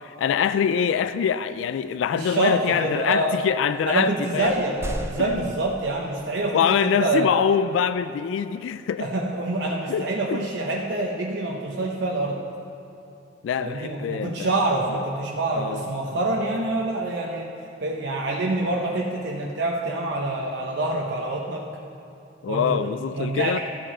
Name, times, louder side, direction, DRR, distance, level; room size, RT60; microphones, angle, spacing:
voice 1, 0.0-4.5 5.2-5.5 6.5-9.1 9.9-10.5 13.4-14.5 15.5-15.8 22.4-23.6, left 7 dB, 80° left, 13 dB, 0.3 m, -24 dB
voice 2, 2.1-3.4 3.9-7.3 9.0-12.4 13.6-17.5 17.8-21.7 22.5-23.6, right 2 dB, 65° right, -1 dB, 0.8 m, -26 dB
sound 1, 4.4-6.5, right 1 dB, 15° right, 0.5 m, -36 dB
13.0 x 7.5 x 4.3 m, 2.9 s
head